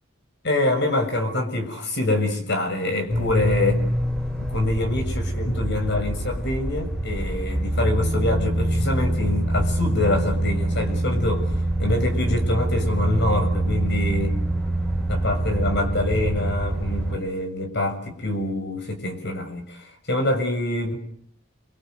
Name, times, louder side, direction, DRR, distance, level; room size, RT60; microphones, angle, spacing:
voice 1, 0.4-3.8 4.4-11.5 11.8-14.4 15.1-21.0, left 2 dB, 60° left, 6 dB, 7.0 m, -25 dB
sound 1, 3.1-17.2, right 1 dB, ahead, 5.0 m, -25 dB
29.5 x 25.0 x 8.1 m, 0.63 s
head